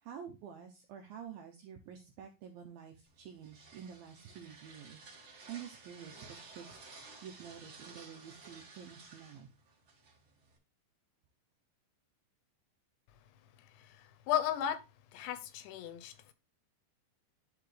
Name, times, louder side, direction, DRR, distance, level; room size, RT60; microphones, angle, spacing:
voice 1, 0.0-5.2 5.5-6.8 7.2-9.5, right 8 dB, 80° right, 2.1 m, -49 dB
sound 1, 3.1-10.6, right 3 dB, 40° right, 2.0 m, -54 dB
voice 2, 13.8-14.8 15.1-16.3, left 10 dB, 80° left, 2.9 m, -35 dB
12.5 x 4.4 x 3.3 m
omnidirectional pair, 5.3 m